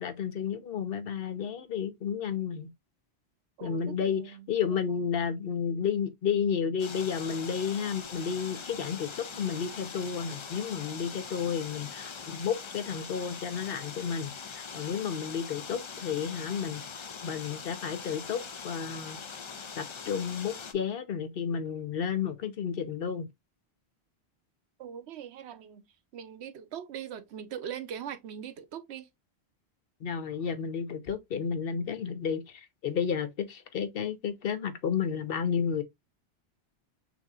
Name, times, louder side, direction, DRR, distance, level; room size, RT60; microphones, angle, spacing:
voice 1, 0.0-2.7 3.6-16.8 17.2-19.2 19.8-23.3 30.0-35.8, left 7 dB, 65° left, 0.9 m, -32 dB
voice 2, 3.6-4.8 24.8-25.8 26.1-29.1, right 9 dB, 90° right, 0.9 m, -41 dB
sound 1, 6.8-20.7, left 5 dB, 45° left, 0.4 m, -42 dB
6.0 x 2.7 x 2.4 m
omnidirectional pair, 1.1 m